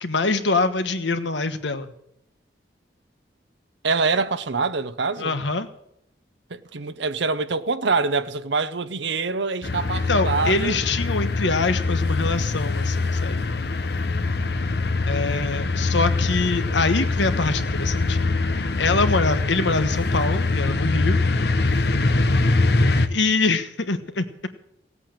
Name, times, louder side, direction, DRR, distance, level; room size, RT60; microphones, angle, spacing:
voice 1, 0.0-1.9 5.2-5.7 10.1-13.5 15.1-18.2 18.8-21.2 23.1-24.5, left 3 dB, 75° left, 1.3 m, -24 dB
voice 2, 3.8-5.4 6.5-10.8, right 4 dB, 75° right, 0.9 m, -25 dB
sound 1, 9.6-23.1, left 3 dB, 60° left, 0.9 m, -23 dB
16.5 x 8.3 x 8.9 m
head